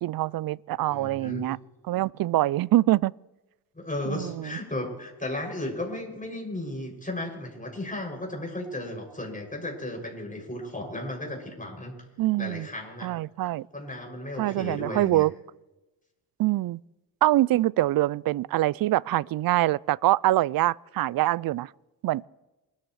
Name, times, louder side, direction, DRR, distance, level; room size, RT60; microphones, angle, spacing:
voice 1, 0.0-1.6 1.9-3.1 4.1-4.5 12.2-12.7 13.0-13.7 14.4-15.3 16.4-16.8 17.2-21.7 22.0-22.3, right 15 dB, 50° right, 0.5 m, -24 dB
voice 2, 0.9-1.4 3.7-11.9 12.4-13.1 13.7-15.2, left 1 dB, 15° left, 7.1 m, -35 dB
27.5 x 14.5 x 3.3 m
hypercardioid pair, 50°, 47 cm